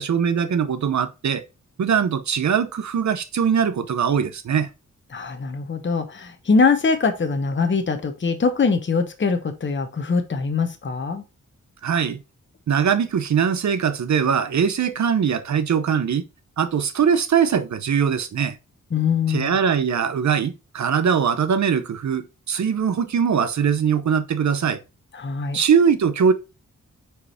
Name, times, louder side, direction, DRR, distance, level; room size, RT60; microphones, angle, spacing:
voice 1, 0.0-1.4 1.8-4.7 11.8-12.2 12.7-16.2 16.6-18.6 19.3-24.8 25.5-26.3, right 7 dB, 60° right, 0.8 m, -21 dB
voice 2, 5.1-11.2 18.9-19.6 25.1-25.6, left 4 dB, 35° left, 0.9 m, -22 dB
4.8 x 4.6 x 4.2 m
cardioid pair, 75°, 31 cm